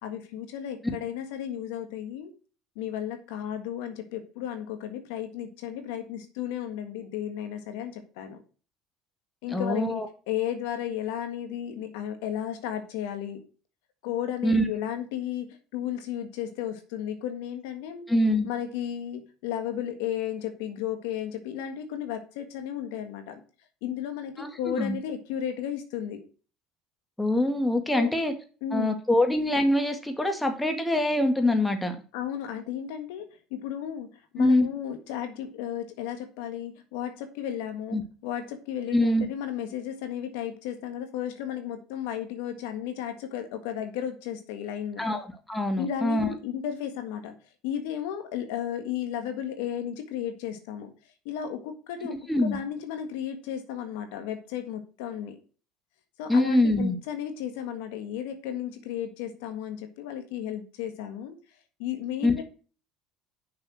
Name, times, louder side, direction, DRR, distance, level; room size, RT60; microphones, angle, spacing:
voice 1, 0.0-2.3 2.7-8.4 9.4-13.4 14.0-18.1 18.4-23.4 23.8-26.2 27.9-28.1 28.6-29.0 32.1-45.1 45.8-47.3 47.6-50.9 51.2-55.4 56.2-61.3 61.8-62.4, left 10 dB, 85° left, 7 dB, 1.6 m, -34 dB
voice 2, 9.5-10.1 14.4-14.6 18.1-18.5 24.4-25.0 27.2-28.3 28.7-32.0 34.4-34.7 37.9-38.0 38.9-39.3 45.0-46.3 52.3-52.6 56.3-56.9 62.2-62.4, left 1 dB, 10° left, 6 dB, 1.9 m, -24 dB
6.6 x 5.6 x 6.2 m, 0.38 s
supercardioid pair, 90°, 0 cm